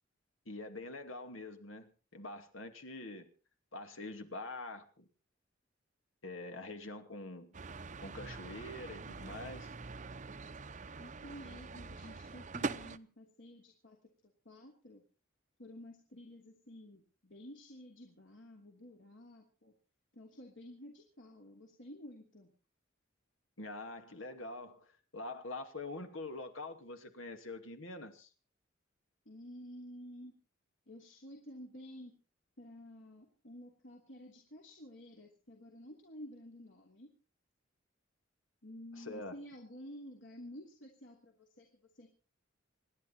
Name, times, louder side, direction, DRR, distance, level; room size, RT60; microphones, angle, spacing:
voice 1, 0.5-3.3 3.7-5.1 6.2-7.5 8.0-9.7 23.6-28.3 39.0-39.3, left 2 dB, 90° left, 7 dB, 2.5 m, -45 dB
sound 1, 7.5-13.0, right 4 dB, 40° right, 0.7 m, -44 dB
voice 2, 11.0-14.0 14.2-15.0 15.6-19.7 20.1-22.5 29.2-30.3 30.9-32.2 32.6-37.1 38.6-41.7 41.9-42.1, equal, 65° left, 0 dB, 3.1 m, -51 dB
27.5 x 11.0 x 4.3 m, 0.37 s
head